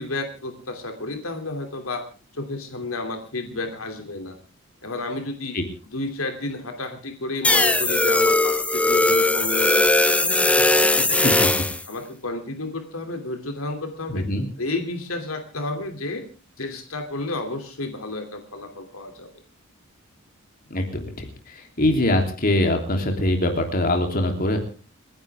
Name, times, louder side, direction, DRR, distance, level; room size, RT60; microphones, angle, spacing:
voice 1, 0.0-2.0 2.3-4.4 4.8-5.6 5.9-11.4 11.9-14.3 14.6-16.2 16.6-19.3, left 2 dB, 75° left, 6 dB, 2.9 m, -31 dB
sound 1, 7.4-11.8, left 2 dB, 5° left, 0.7 m, -19 dB
voice 2, 11.0-11.5 14.1-14.5 20.7-24.6, left 1 dB, 45° left, 4 dB, 3.2 m, -23 dB
29.0 x 11.0 x 3.6 m, 0.36 s
head